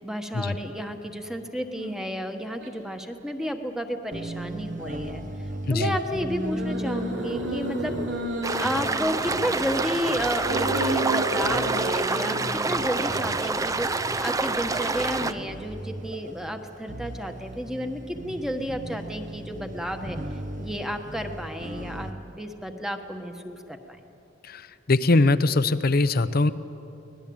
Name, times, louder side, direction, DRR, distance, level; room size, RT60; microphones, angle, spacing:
voice 1, 0.0-5.2 5.7-7.9 8.6-13.9 14.2-20.2 20.6-24.0, equal, 5° right, 5 dB, 1.4 m, -32 dB
sound 1, 1.7-2.0 2.6-2.7 6.4-9.7 10.4-13.3, right 1 dB, 75° right, 3.7 m, -31 dB
sound 2, 4.1-22.1, right 1 dB, 45° right, 1.2 m, -37 dB
sound 3, 8.4-15.3, right 3 dB, 20° right, 0.6 m, -27 dB
voice 2, 24.9-26.5, left 2 dB, 55° left, 13 dB, 0.8 m, -21 dB
24.0 x 19.0 x 8.7 m, 2.9 s
head